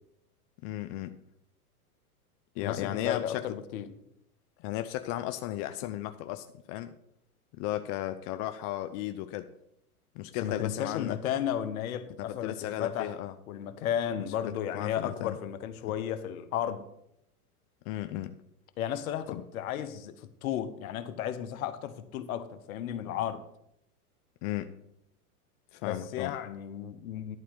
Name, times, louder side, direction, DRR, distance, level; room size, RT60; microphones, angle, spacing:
voice 1, 0.6-1.1 2.6-3.5 4.6-6.9 7.6-9.5 10.2-11.2 12.2-13.3 14.4-15.4 17.9-18.3 19.3-19.4 24.4-24.7 25.7-26.3, left 14 dB, 40° left, 9 dB, 0.6 m, -35 dB
voice 2, 2.6-4.0 10.4-13.2 13.5-16.9 18.8-23.4 25.8-27.4, left 10 dB, 65° left, 11 dB, 1.2 m, -34 dB
11.5 x 4.3 x 7.9 m, 0.76 s
hypercardioid pair, 115°, 45 cm